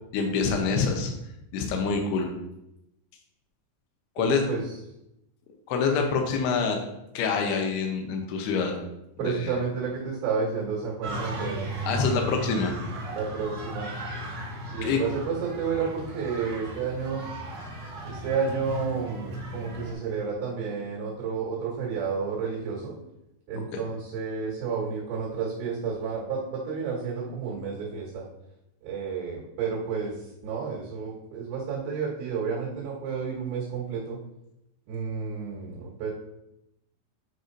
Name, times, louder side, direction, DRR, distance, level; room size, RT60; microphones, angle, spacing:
voice 1, 0.1-1.1 1.5-2.3 4.2-4.4 5.7-6.8 7.1-8.8 9.2-9.5 11.8-12.8 14.8-15.0 23.5-23.6, left 5 dB, 75° left, 3 dB, 2.6 m, -26 dB
voice 2, 4.2-4.7 9.2-11.7 13.1-13.9 14.7-17.3 18.1-23.0 23.5-28.2 28.8-34.2 34.9-36.1, right 5 dB, 75° right, -6 dB, 3.7 m, -31 dB
sound 1, 11.0-19.9, right 1 dB, 55° right, 2.3 m, -36 dB
9.1 x 4.8 x 2.6 m, 0.87 s
omnidirectional pair, 5.3 m